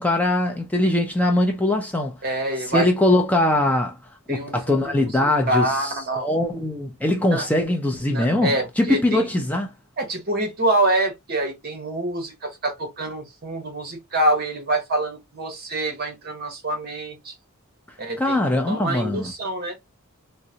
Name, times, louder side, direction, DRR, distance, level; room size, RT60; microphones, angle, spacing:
voice 1, 0.0-2.2 2.6-4.0 4.3-9.7 18.2-19.3, left 1 dB, 5° left, 0.4 m, -22 dB
voice 2, 2.2-2.9 4.3-5.1 5.5-6.3 7.3-7.5 8.1-9.3 10.0-17.3 18.0-18.4 18.7-19.8, right 1 dB, 45° right, 1.0 m, -26 dB
3.7 x 2.1 x 2.7 m
head